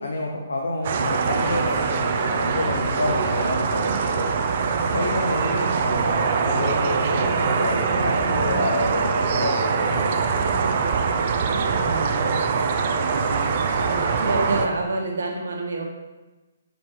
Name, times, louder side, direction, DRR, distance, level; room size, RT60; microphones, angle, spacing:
voice 1, 0.0-4.3 4.9-10.8, left 2 dB, 85° left, 0 dB, 0.9 m, -29 dB
sound 1, 0.8-14.4, right 2 dB, 30° right, 1.0 m, -41 dB
sound 2, 0.8-14.7, right 5 dB, 50° right, 0.6 m, -23 dB
voice 2, 11.5-15.8, right 2 dB, 75° right, 0 dB, 1.4 m, -29 dB
5.2 x 4.5 x 4.7 m, 1.1 s
hypercardioid pair, 145°, 0 cm